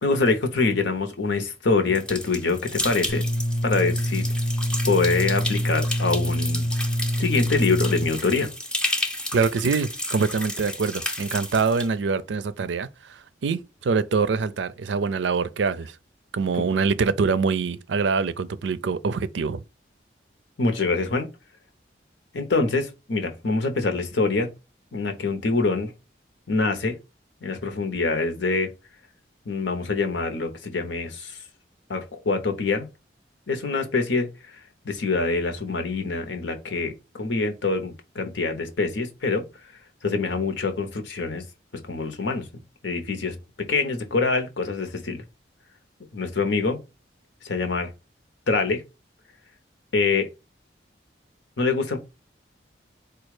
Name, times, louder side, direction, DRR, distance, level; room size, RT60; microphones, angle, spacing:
voice 1, 0.0-3.2 3.6-4.2 4.9-6.6 7.2-8.5 16.5-16.6 20.6-21.3 22.3-24.5 24.9-25.9 26.5-27.0 27.4-28.7 29.4-31.4 31.9-32.9 33.5-34.6 34.8-39.4 40.0-41.4 41.8-42.5 42.8-45.2 46.1-46.8 47.4-47.9 48.5-48.8 49.9-50.3 51.6-52.0, left 3 dB, 85° left, 0.9 m, -25 dB
sound 1, 2.0-11.9, left 1 dB, 5° left, 0.5 m, -32 dB
sound 2, 3.1-8.1, equal, 50° left, 0.7 m, -25 dB
voice 2, 9.3-16.0 16.3-19.6, right 5 dB, 80° right, 0.4 m, -24 dB
4.4 x 2.3 x 4.7 m
head